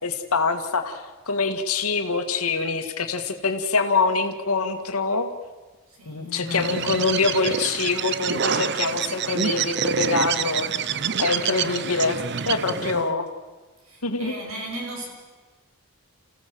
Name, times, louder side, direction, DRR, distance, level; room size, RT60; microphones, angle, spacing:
voice 1, 0.0-5.3 6.1-10.9 11.2-12.2 12.5-13.3 14.0-14.3, left 4 dB, 80° left, 6 dB, 1.9 m, -25 dB
voice 2, 5.9-6.9 12.3-13.2 13.8-15.0, equal, 70° right, 0 dB, 6.6 m, -36 dB
Bird, 6.5-13.1, right 7 dB, 50° right, 0.6 m, -27 dB
28.5 x 16.0 x 7.7 m, 1.3 s
head